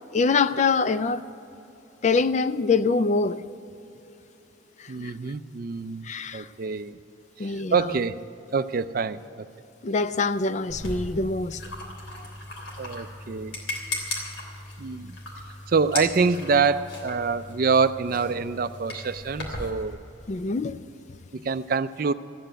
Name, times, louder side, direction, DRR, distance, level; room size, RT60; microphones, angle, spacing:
voice 1, 0.1-1.2 2.0-3.4 4.8-5.1 6.0-6.5 7.4-7.7 9.8-11.6 12.2-12.3 20.3-20.8, left 4 dB, 35° left, 0.3 m, -24 dB
voice 2, 4.9-7.0 7.4-8.2 8.5-9.5 12.8-13.6 14.8-15.2 15.7-20.0 21.3-22.1, right 5 dB, 45° right, 0.4 m, -26 dB
sound 1, 10.7-19.7, left 1 dB, 65° left, 3.3 m, -37 dB
14.5 x 8.9 x 9.0 m
head